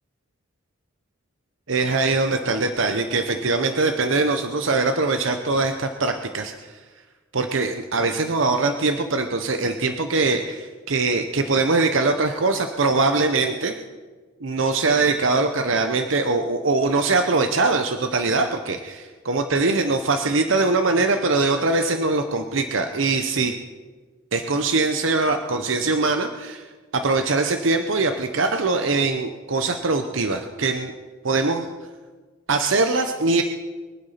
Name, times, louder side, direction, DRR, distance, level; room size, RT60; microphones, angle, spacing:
voice 1, 1.7-6.8 7.3-13.7 14.4-23.5 24.3-26.7 26.9-30.9 31.2-31.7 32.5-33.4, right 3 dB, 75° right, 7 dB, 0.9 m, -22 dB
23.5 x 8.3 x 5.8 m, 1.4 s
head